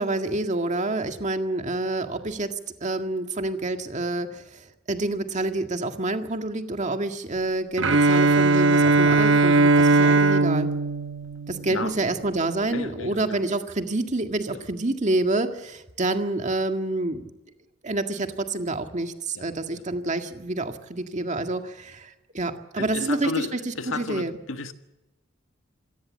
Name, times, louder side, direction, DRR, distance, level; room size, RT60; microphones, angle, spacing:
voice 1, 0.0-2.6 2.8-10.7 11.5-17.3 17.8-23.3 24.0-24.3, right 2 dB, 35° right, 1.9 m, -28 dB
Bowed string instrument, 7.8-11.9, right 3 dB, 65° right, 1.0 m, -19 dB
voice 2, 12.7-13.4 19.3-19.4 22.8-24.7, left 3 dB, 85° left, 1.6 m, -33 dB
27.0 x 17.5 x 7.5 m
head